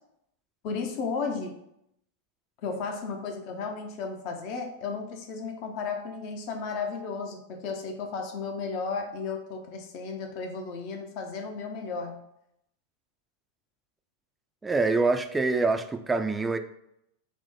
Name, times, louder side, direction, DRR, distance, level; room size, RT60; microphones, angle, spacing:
voice 1, 0.6-1.6 2.6-12.2, left 4 dB, 45° left, 3 dB, 0.5 m, -34 dB
voice 2, 14.6-16.6, right 3 dB, 10° right, 8 dB, 0.3 m, -25 dB
4.3 x 2.1 x 4.0 m, 0.79 s
figure-of-eight pair, 90°, 0 cm